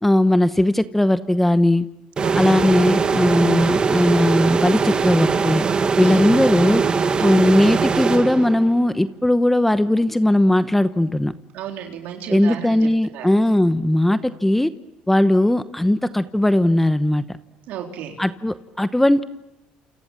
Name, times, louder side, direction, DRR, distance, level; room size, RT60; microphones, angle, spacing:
voice 1, 0.0-1.8 2.3-5.7 6.0-6.8 7.2-11.3 12.3-14.7 15.1-17.2 18.2-19.2, left 1 dB, 5° left, 12 dB, 0.9 m, -18 dB
sound 1, 2.2-8.8, right 5 dB, 30° right, 1.6 m, -21 dB
voice 2, 11.5-13.3 17.7-18.2, right 9 dB, 70° right, 2 dB, 3.7 m, -33 dB
28.5 x 28.0 x 7.4 m, 0.93 s
supercardioid pair, 95°, 3 cm